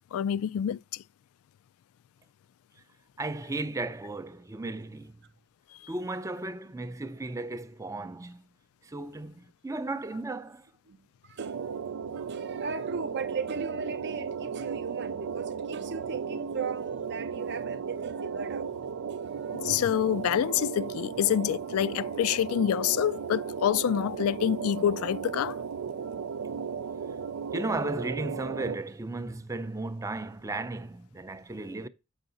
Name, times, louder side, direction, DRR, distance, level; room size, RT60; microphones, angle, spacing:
voice 1, 0.1-1.0 19.5-25.6, left 10 dB, 75° left, 0.3 m, -27 dB
voice 2, 3.2-5.2 5.9-8.5 8.8-10.7 27.5-31.9, right 2 dB, 15° right, 0.5 m, -35 dB
sound 1, 11.4-28.8, right 6 dB, 90° right, 0.4 m, -35 dB
voice 3, 12.2-18.7, right 4 dB, 55° right, 0.8 m, -37 dB
8.0 x 5.5 x 3.9 m
head